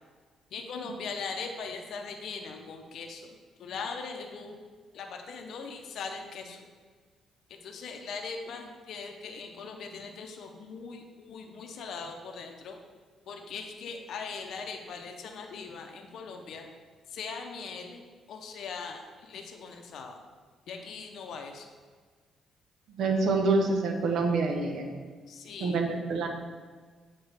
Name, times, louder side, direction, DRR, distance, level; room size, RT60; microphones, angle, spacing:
voice 1, 0.5-4.6 4.9-6.7 7.6-12.8 13.3-16.7 17.1-20.2 20.7-21.7 25.3-25.8, left 5 dB, 70° left, 3 dB, 0.7 m, -40 dB
voice 2, 23.0-24.9 25.6-26.3, right 3 dB, 75° right, 4 dB, 0.9 m, -26 dB
8.0 x 4.3 x 3.4 m, 1.5 s
cardioid pair, 90°, 0 cm